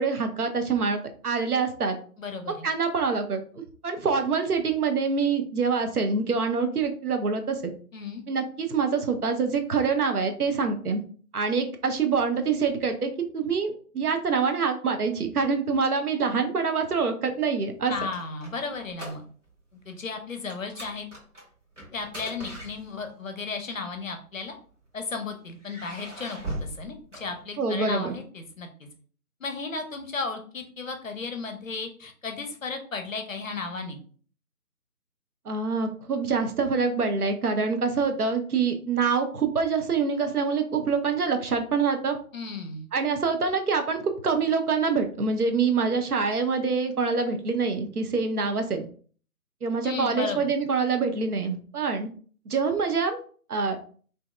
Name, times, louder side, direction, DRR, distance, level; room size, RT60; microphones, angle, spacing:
voice 1, 0.0-2.0 2.6-7.7 8.3-11.0 11.3-17.9 27.6-28.1 35.5-42.2 42.9-48.8 49.6-52.1 52.5-53.2 53.5-53.8, right 5 dB, 75° right, 7 dB, 0.6 m, -25 dB
voice 2, 2.2-2.7 7.9-8.2 17.9-19.2 19.9-21.1 21.9-24.5 24.9-28.9 29.4-34.0 42.3-42.9 49.8-50.5, left 4 dB, 60° left, 5 dB, 0.5 m, -34 dB
sound 1, 17.7-19.6 19.8-20.1 20.5-23.3 24.2-25.0 25.6-27.9, right 1 dB, 50° right, 1.1 m, -40 dB
2.6 x 2.2 x 2.2 m, 0.44 s
figure-of-eight pair, 155°, 46 cm